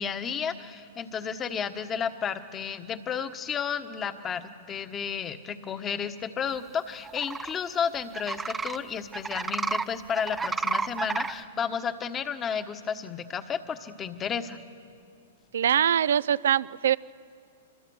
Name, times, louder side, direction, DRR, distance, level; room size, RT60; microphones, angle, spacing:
voice 1, 0.0-4.4 4.7-14.6, left 7 dB, 25° left, 9 dB, 1.4 m, -32 dB
sound 1, 7.0-7.5 8.1-8.8 9.1-9.8 10.1-11.3, right 4 dB, 10° right, 0.7 m, -30 dB
voice 2, 15.5-17.0, right 9 dB, 70° right, 20 dB, 0.5 m, -23 dB
25.5 x 22.0 x 6.4 m, 2.4 s
hypercardioid pair, 120°, 0 cm